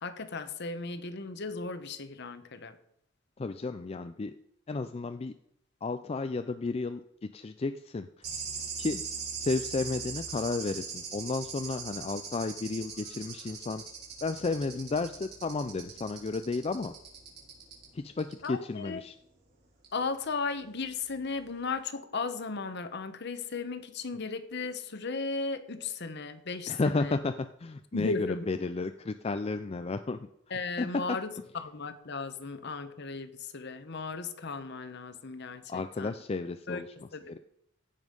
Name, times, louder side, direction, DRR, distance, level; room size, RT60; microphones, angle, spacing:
voice 1, 0.0-2.8 18.4-19.0 19.9-27.2 27.9-28.5 30.5-36.2 36.7-36.8 37.1-37.4, left 4 dB, 55° left, 11 dB, 1.0 m, -36 dB
voice 2, 3.4-4.3 4.7-5.3 5.8-8.3 8.8-9.0 9.4-13.8 14.2-16.9 17.9-19.1 26.7-30.3 30.8-31.2 35.7-37.4, left 3 dB, 30° left, 10 dB, 0.4 m, -33 dB
sound 1, 8.2-17.9 18.2-18.5 19.8-19.9, right 5 dB, 55° right, 3.9 m, -41 dB
15.5 x 5.4 x 5.3 m, 0.75 s
head